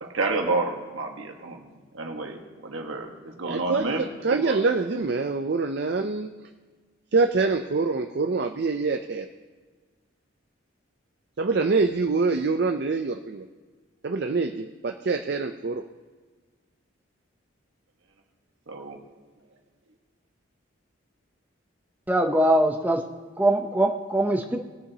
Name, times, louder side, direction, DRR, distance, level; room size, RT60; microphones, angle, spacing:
voice 1, 0.0-4.6 18.7-19.0, right 3 dB, 80° right, 3 dB, 1.4 m, -30 dB
voice 2, 3.4-6.3 7.1-9.3 11.4-13.5 14.0-15.8, right 4 dB, 55° right, 5 dB, 0.5 m, -25 dB
voice 3, 22.1-23.0 23.4-24.6, right 1 dB, 10° right, 3 dB, 0.6 m, -22 dB
19.0 x 7.0 x 2.8 m, 1.4 s
head